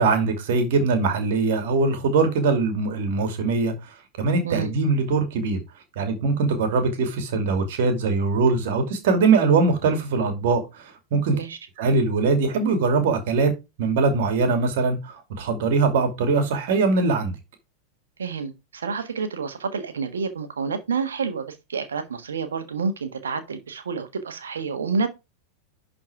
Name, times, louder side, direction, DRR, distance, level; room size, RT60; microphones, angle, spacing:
voice 1, 0.0-3.7 4.2-5.6 6.0-11.4 11.8-13.5 13.8-17.3, right 4 dB, 50° right, 2.5 m, -22 dB
voice 2, 18.2-25.1, right 5 dB, 70° right, 1.5 m, -29 dB
11.0 x 4.2 x 4.8 m
figure-of-eight pair, 90°, 0 cm